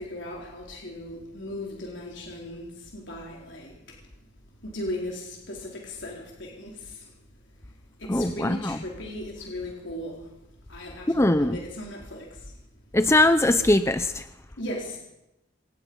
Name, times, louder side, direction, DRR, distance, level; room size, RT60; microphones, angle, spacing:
voice 1, 0.0-3.7 4.6-7.1 8.0-10.3 10.7-12.5 14.6-15.0, left 1 dB, 65° left, -1 dB, 4.2 m, -37 dB
voice 2, 8.1-8.8 11.1-11.6 12.9-14.2, left 1 dB, 15° left, 10 dB, 0.7 m, -21 dB
26.0 x 18.5 x 5.5 m, 0.89 s
head